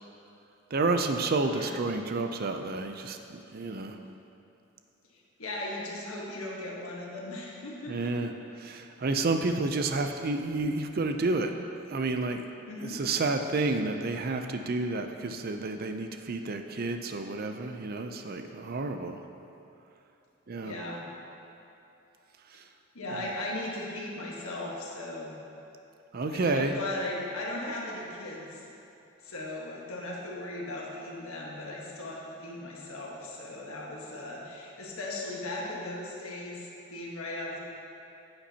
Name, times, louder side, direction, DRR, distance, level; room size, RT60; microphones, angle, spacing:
voice 1, 0.7-4.0 7.9-8.3 8.6-11.5 11.9-12.4 12.8-19.2 20.5-20.7 22.5-22.6 26.1-26.7, right 3 dB, 45° right, 6 dB, 0.5 m, -30 dB
voice 2, 5.1-8.1 12.7-13.0 20.6-21.1 22.9-25.4 26.3-28.6 29.2-37.6, left 2 dB, 75° left, -3 dB, 1.4 m, -37 dB
9.7 x 8.8 x 2.9 m, 2.9 s
head